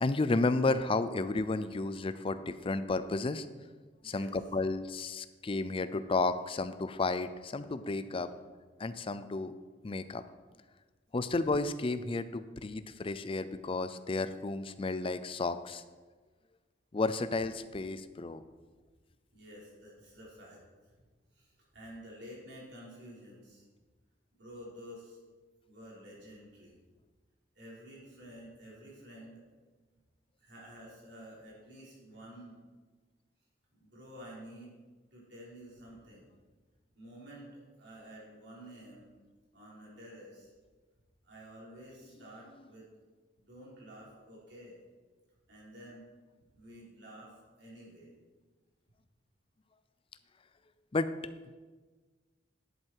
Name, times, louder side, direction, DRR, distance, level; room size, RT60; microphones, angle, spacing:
voice 1, 0.0-3.5 4.0-8.3 8.8-9.5 9.8-10.2 11.1-15.8 16.9-18.4 50.9-51.1, left 3 dB, 30° left, 12 dB, 0.5 m, -32 dB
voice 2, 4.0-4.3 8.0-8.5 19.3-20.9 21.3-23.6 24.3-25.2 25.6-26.8 27.6-29.4 30.4-32.6 33.7-34.8 35.1-36.3 37.0-39.1 39.5-40.5 41.2-42.9 43.4-44.8 45.5-46.0 46.5-48.1, equal, 65° right, -5 dB, 3.7 m, -51 dB
11.0 x 7.8 x 4.7 m, 1.4 s
head